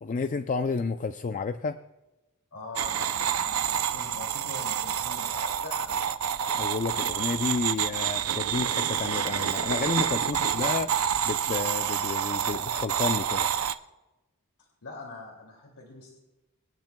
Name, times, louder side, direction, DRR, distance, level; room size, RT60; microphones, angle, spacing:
voice 1, 0.0-1.8 6.5-11.0 11.2-13.5, left 4 dB, 35° left, 9 dB, 0.4 m, -31 dB
voice 2, 2.5-6.0 14.8-16.1, left 3 dB, 85° left, -2 dB, 2.4 m, -43 dB
sound 1, 2.8-13.7, right 9 dB, 70° right, 0.5 m, -28 dB
25.0 x 10.5 x 2.2 m, 1.0 s
head